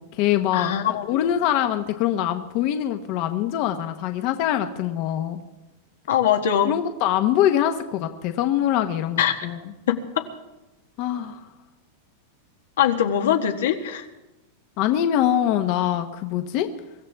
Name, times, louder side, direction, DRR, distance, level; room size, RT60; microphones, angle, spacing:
voice 1, 0.0-5.4 6.6-9.6 11.0-11.4 14.8-16.7, left 11 dB, 45° left, 7 dB, 1.0 m, -23 dB
voice 2, 0.5-1.3 6.1-6.8 9.2-9.3 9.9-10.2 12.8-14.0, left 9 dB, 85° left, 5 dB, 1.5 m, -22 dB
23.5 x 14.0 x 3.5 m, 1.0 s
supercardioid pair, 150°, 0 cm